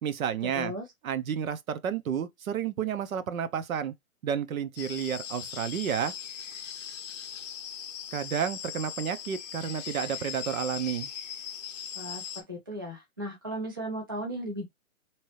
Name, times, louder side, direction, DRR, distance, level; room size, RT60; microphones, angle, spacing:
voice 1, 0.0-0.7 1.0-3.9 4.2-6.1 8.1-11.1, right 8 dB, 75° right, 0.8 m, -31 dB
voice 2, 0.5-0.9 11.9-14.6, equal, 20° right, 0.3 m, -36 dB
sound 1, 4.8-12.4, left 9 dB, 30° left, 0.6 m, -39 dB
3.7 x 3.0 x 3.1 m
hypercardioid pair, 150°, 42 cm